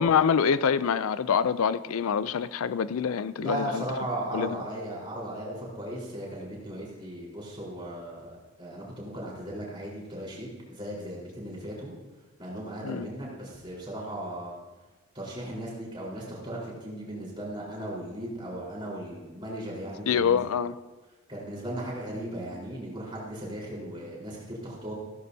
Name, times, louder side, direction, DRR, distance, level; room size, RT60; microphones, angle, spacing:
voice 1, 0.0-3.8 4.3-4.6 12.8-13.1 20.1-20.7, left 7 dB, 80° left, 16 dB, 0.4 m, -25 dB
voice 2, 3.4-8.3 8.6-11.9 12.4-14.6 15.1-20.4 21.3-24.9, right 1 dB, 25° right, -5 dB, 4.2 m, -37 dB
15.5 x 14.5 x 2.8 m, 1.2 s
head